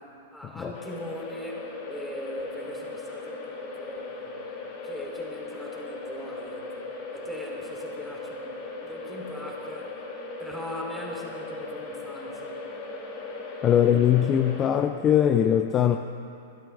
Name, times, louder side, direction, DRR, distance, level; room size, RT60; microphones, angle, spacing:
voice 1, 0.0-4.4 4.8-6.9 7.1-10.0 10.4-12.6, left 1 dB, 5° left, -2 dB, 3.7 m, -40 dB
sound 1, 0.7-14.7, left 3 dB, 50° left, 2.4 m, -38 dB
voice 2, 13.6-16.0, left 9 dB, 30° left, 8 dB, 0.6 m, -21 dB
29.5 x 12.0 x 3.6 m, 2.6 s
hypercardioid pair, 110°, 0 cm